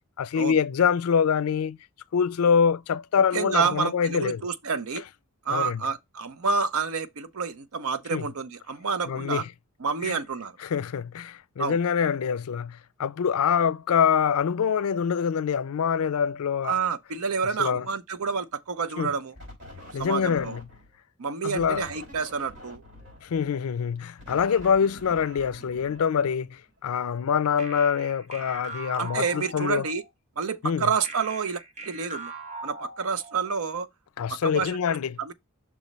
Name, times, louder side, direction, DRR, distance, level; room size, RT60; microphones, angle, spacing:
voice 1, 0.2-1.8 2.1-4.4 5.5-5.8 8.1-8.2 9.1-9.4 10.0-10.2 10.6-16.8 17.6-17.8 19.0-19.1 19.9-20.6 21.4-21.9 23.2-29.9 30.6-30.9 34.2-35.2, left 7 dB, 90° left, 0.4 m, -25 dB
voice 2, 3.3-5.0 5.5-9.4 9.8-10.6 11.6-11.8 16.6-19.3 20.0-20.6 21.2-22.8 29.0-30.0 30.4-32.3 32.6-33.9 34.3-34.8 35.2-35.3, right 5 dB, 75° right, 0.6 m, -29 dB
sound 1, 19.4-21.0 21.6-26.7, left 1 dB, 55° right, 4.2 m, -46 dB
sound 2, 27.6-30.1 31.0-33.6, right 3 dB, 30° right, 0.7 m, -41 dB
6.1 x 3.1 x 5.2 m
head